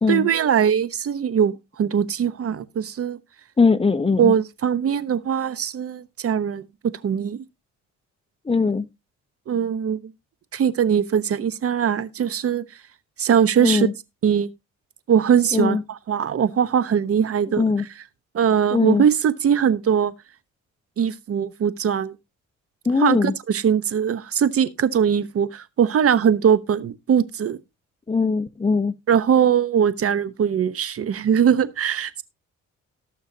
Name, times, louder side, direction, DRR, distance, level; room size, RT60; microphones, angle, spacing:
voice 1, 0.1-3.2 4.2-6.6 7.0-7.4 9.5-10.1 10.5-12.6 13.2-13.9 14.2-14.5 15.1-17.6 18.3-20.1 21.0-22.2 22.9-27.6 29.1-32.2, right 8 dB, 50° right, 1.0 m, -21 dB
voice 2, 3.6-4.3 8.5-8.8 13.6-13.9 15.5-15.8 17.6-17.8 18.7-19.0 22.9-23.3 28.1-28.9, left 4 dB, 20° left, 0.7 m, -20 dB
18.5 x 6.5 x 2.8 m
cardioid pair, 90°, 30 cm